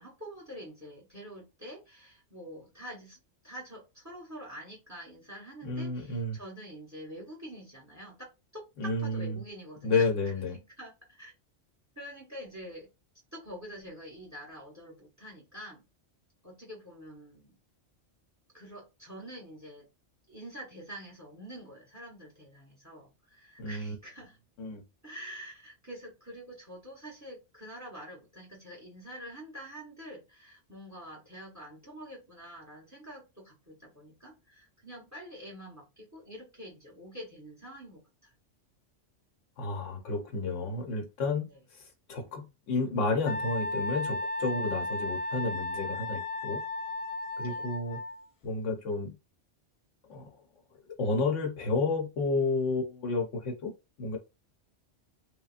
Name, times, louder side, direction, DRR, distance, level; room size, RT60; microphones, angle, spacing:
voice 1, 0.0-3.2 3.4-8.3 8.5-11.3 12.0-12.9 13.3-15.9 16.4-17.6 18.5-19.9 20.3-24.4 25.0-38.3 41.5-41.6 47.4-47.7, equal, 15° right, 1.0 m, -46 dB
voice 2, 5.6-6.4 8.8-9.3 9.8-10.6 23.6-24.0 24.6-24.8 39.6-41.8 42.1-46.6 47.4-48.0 48.4-49.1 50.1-50.3 51.0-53.7 54.0-54.2, left 3 dB, 80° left, 1.2 m, -31 dB
Wind instrument woodwind instrument, 43.3-48.2, left 2 dB, 60° left, 0.7 m, -34 dB
3.5 x 2.1 x 2.4 m
omnidirectional pair, 1.2 m